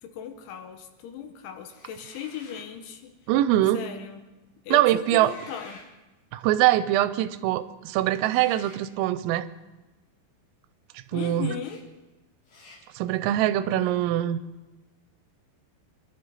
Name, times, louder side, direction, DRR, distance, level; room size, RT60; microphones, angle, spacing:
voice 1, 0.0-3.1 3.7-4.2 4.7-5.8 11.1-11.9, left 8 dB, 75° left, 6 dB, 3.3 m, -37 dB
sound 1, 1.6-2.7 5.0-5.9 8.2-8.8 11.2-11.3 11.6-11.8 12.5-12.8, left 3 dB, 45° left, 4.6 m, -50 dB
voice 2, 3.3-3.8 4.7-5.3 6.3-9.5 11.1-11.5 13.0-14.4, right 13 dB, 90° right, 13 dB, 3.3 m, -23 dB
25.5 x 12.0 x 4.0 m, 1.1 s
omnidirectional pair, 5.8 m